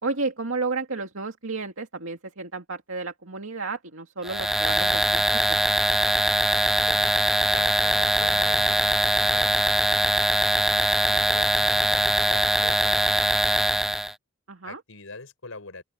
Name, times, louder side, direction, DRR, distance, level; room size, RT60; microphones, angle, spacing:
voice 1, 0.0-5.6 14.5-14.8, right 3 dB, 75° right, 2.3 m, -32 dB
sound 1, 4.2-14.1, right 1 dB, ahead, 0.4 m, -22 dB
voice 2, 6.9-10.3 10.7-13.8 14.6-15.8, left 3 dB, 85° left, 4.7 m, -43 dB
open air
head